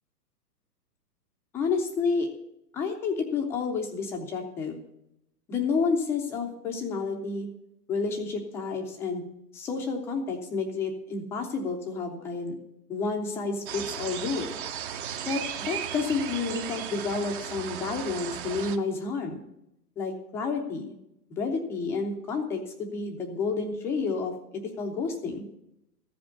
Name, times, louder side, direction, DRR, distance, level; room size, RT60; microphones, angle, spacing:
voice 1, 1.5-2.3 2.7-4.8 5.5-7.5 7.9-9.2 9.5-12.6 12.9-14.5 15.2-19.4 20.0-20.9 21.3-25.5, left 4 dB, 5° left, 2 dB, 0.4 m, -30 dB
sound 1, 13.7-18.8, right 9 dB, 35° right, 0.7 m, -36 dB
14.0 x 5.2 x 9.4 m, 0.85 s
hypercardioid pair, 130°, 48 cm